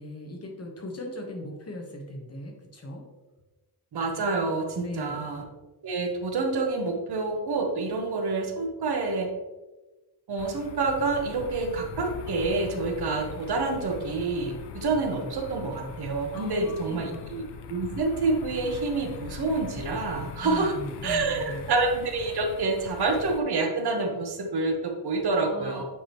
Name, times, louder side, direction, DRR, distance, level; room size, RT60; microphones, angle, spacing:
voice 1, 0.0-3.0 4.8-5.3 16.3-17.4 20.4-21.7 25.4-25.8, left 1 dB, 40° left, 2 dB, 1.2 m, -39 dB
voice 2, 3.9-5.4 5.8-9.3 10.3-20.7 21.0-25.8, right 3 dB, 70° right, 3 dB, 1.1 m, -28 dB
sound 1, 10.4-23.4, left 7 dB, 90° left, 0.6 m, -42 dB
8.4 x 5.0 x 3.0 m, 1.2 s
wide cardioid pair, 165°, 40 cm